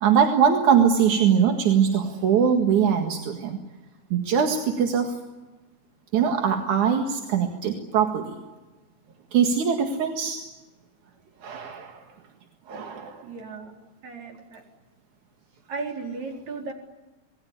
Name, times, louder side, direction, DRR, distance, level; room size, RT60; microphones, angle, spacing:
voice 1, 0.0-3.6 4.1-5.2 6.1-8.3 9.3-10.4 11.4-12.0 12.7-13.2, right 7 dB, 85° right, 3 dB, 3.3 m, -22 dB
voice 2, 13.2-13.7 14.0-14.6 15.7-16.7, right 4 dB, 70° right, 1 dB, 5.5 m, -35 dB
27.5 x 20.5 x 9.8 m, 1.2 s
omnidirectional pair, 3.3 m